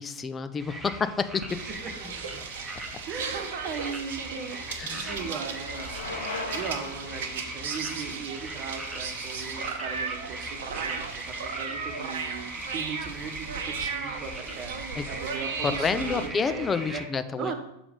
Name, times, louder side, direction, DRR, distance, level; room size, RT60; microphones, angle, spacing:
voice 1, 0.0-1.6 4.8-5.2 15.0-15.1 15.6-17.6, left 5 dB, 20° left, 11 dB, 0.5 m, -29 dB
sound 1, 0.6-17.1, right 1 dB, 10° right, 1.2 m, -40 dB
sound 2, 1.4-16.3, right 5 dB, 55° right, 0.8 m, -36 dB
voice 2, 1.6-2.4 3.1-17.0 17.4-17.6, right 5 dB, 35° right, 6 dB, 1.1 m, -38 dB
Bicycle, 3.7-9.7, left 2 dB, 70° left, 1.8 m, -41 dB
6.7 x 4.9 x 5.2 m, 0.86 s
figure-of-eight pair, 90°, 0 cm